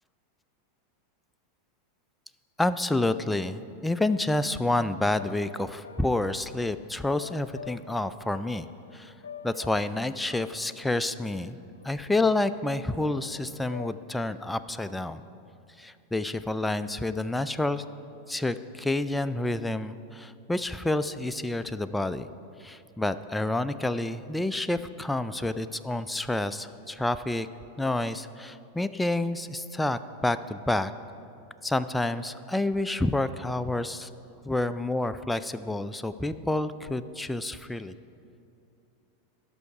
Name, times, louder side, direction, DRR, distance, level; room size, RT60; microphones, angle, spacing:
voice 1, 2.6-8.7 8.9-9.1 9.4-11.6 11.8-15.2 15.8-17.8 18.3-22.3 22.6-27.5 27.8-30.9 31.6-34.1 34.4-37.9, left 2 dB, 5° left, 11 dB, 0.3 m, -29 dB
sound 1, 4.2-12.2 13.0-13.9, left 7 dB, 90° left, 0.4 m, -48 dB
13.0 x 5.6 x 4.8 m, 2.7 s
hypercardioid pair, 100°, 0 cm